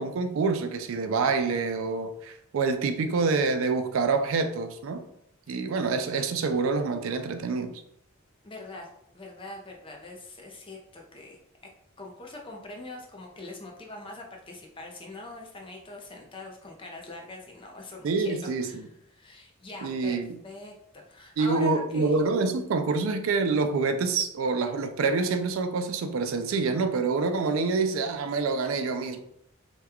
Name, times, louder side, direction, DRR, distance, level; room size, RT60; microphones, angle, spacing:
voice 1, 0.0-5.0 5.5-7.7 18.0-18.8 19.8-20.4 21.4-29.2, right 4 dB, 75° right, 0.4 m, -26 dB
voice 2, 8.4-8.9 9.1-11.4 12.0-22.2, left 2 dB, 25° left, 0.5 m, -43 dB
3.0 x 2.3 x 3.4 m
head